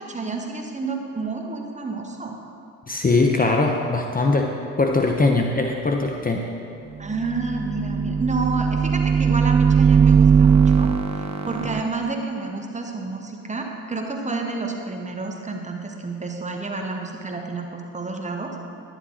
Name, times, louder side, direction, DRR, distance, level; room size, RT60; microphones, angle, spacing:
voice 1, 0.0-2.3 7.0-18.5, right 3 dB, 20° right, 2 dB, 1.7 m, -30 dB
voice 2, 2.9-6.5, left 3 dB, 25° left, 2 dB, 1.0 m, -21 dB
sound 1, 7.1-11.8, right 6 dB, 45° right, 1.0 m, -19 dB
11.0 x 10.5 x 4.3 m, 2.5 s
hypercardioid pair, 65°, 36 cm